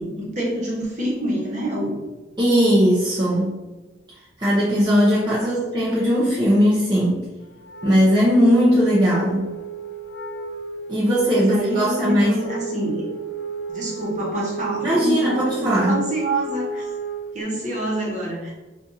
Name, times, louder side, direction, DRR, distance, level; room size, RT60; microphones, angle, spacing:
voice 1, 0.0-2.0 5.4-5.5 11.3-13.0 13.7-16.9 17.3-18.5, right 1 dB, 40° right, -4 dB, 1.1 m, -26 dB
voice 2, 2.4-3.5 4.4-7.2 7.8-9.4 10.9-12.4 14.8-16.0, equal, 25° right, -8 dB, 0.6 m, -18 dB
Wind instrument woodwind instrument, 7.6-17.4, right 5 dB, 65° left, 0.8 m, -33 dB
5.2 x 2.5 x 2.6 m, 1.2 s
head